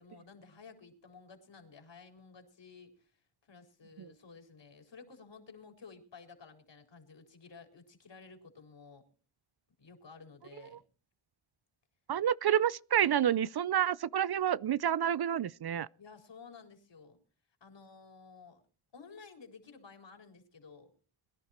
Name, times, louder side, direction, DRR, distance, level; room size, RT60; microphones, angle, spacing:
voice 1, 0.0-3.1 3.5-9.0 9.8-10.8 16.0-17.2 17.6-18.6 18.9-20.9, left 5 dB, 60° left, 4.4 m, -54 dB
voice 2, 12.1-15.9, right 10 dB, 50° right, 0.6 m, -29 dB
22.0 x 11.0 x 4.4 m
cardioid pair, 55°, 49 cm